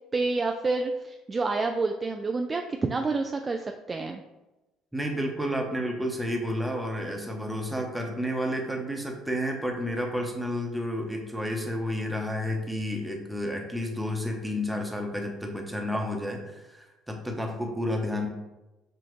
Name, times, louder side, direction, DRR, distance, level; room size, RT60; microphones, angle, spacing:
voice 1, 0.1-4.2, right 3 dB, 30° right, 4 dB, 0.3 m, -28 dB
voice 2, 4.9-18.3, equal, 5° right, 1 dB, 0.9 m, -31 dB
5.7 x 2.4 x 3.1 m, 1.0 s
hypercardioid pair, 60°, 0 cm